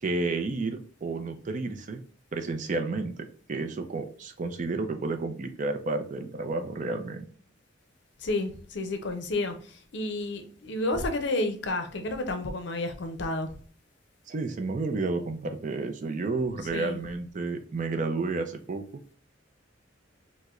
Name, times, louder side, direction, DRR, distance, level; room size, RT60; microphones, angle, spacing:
voice 1, 0.0-2.0 2.3-3.2 3.5-7.2 14.3-19.0, right 3 dB, 40° right, 0.4 m, -31 dB
voice 2, 8.2-13.5 16.7-17.0, left 2 dB, 65° left, 0.6 m, -31 dB
4.6 x 2.1 x 2.4 m
head